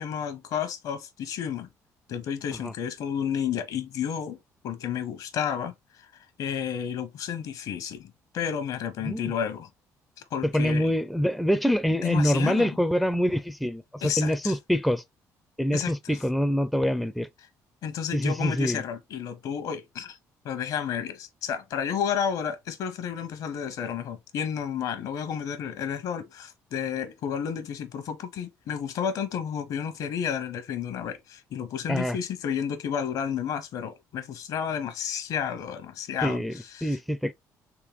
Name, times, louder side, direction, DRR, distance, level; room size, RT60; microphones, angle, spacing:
voice 1, 0.0-1.7 2.1-4.4 4.6-5.7 6.4-9.7 10.3-10.9 12.0-12.7 14.0-14.5 15.7-16.2 17.8-20.2 20.4-36.4 36.7-37.0, left 8 dB, 70° left, 0.8 m, -31 dB
voice 2, 10.4-15.0 15.6-17.3 18.1-18.8 31.9-32.2 36.2-37.3, equal, ahead, 0.4 m, -25 dB
3.6 x 3.3 x 3.0 m
cardioid pair, 85°, 7 cm